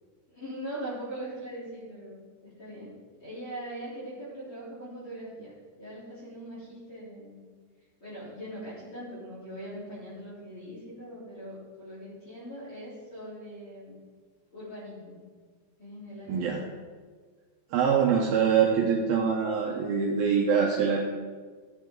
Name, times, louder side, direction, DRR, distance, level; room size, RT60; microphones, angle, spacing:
voice 1, 0.3-2.9 3.2-7.4 8.0-14.0 14.5-15.2 15.8-16.6, right 1 dB, 30° left, -9 dB, 3.8 m, -41 dB
voice 2, 16.3-16.6 17.7-21.0, right 6 dB, 75° right, -1 dB, 2.4 m, -24 dB
16.5 x 8.3 x 3.9 m, 1.5 s
omnidirectional pair, 5.1 m